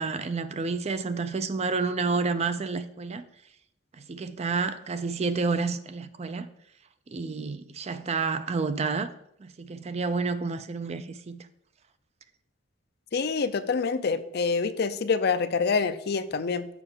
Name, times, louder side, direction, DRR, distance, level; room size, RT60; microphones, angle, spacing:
voice 1, 0.0-3.2 4.0-6.5 7.1-9.1 9.4-11.4, right 4 dB, 35° right, 0.4 m, -29 dB
voice 2, 13.1-16.7, left 5 dB, 55° left, 0.5 m, -26 dB
6.9 x 5.4 x 5.5 m
head